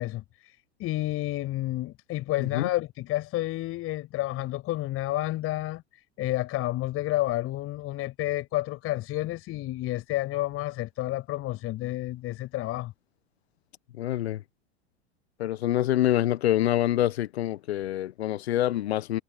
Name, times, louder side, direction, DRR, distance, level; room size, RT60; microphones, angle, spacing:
voice 1, 0.0-12.9, left 16 dB, 40° left, 6.2 m, -30 dB
voice 2, 2.4-2.7 14.0-14.4 15.4-19.2, left 13 dB, 70° left, 1.2 m, -26 dB
figure-of-eight pair, 90°, 33 cm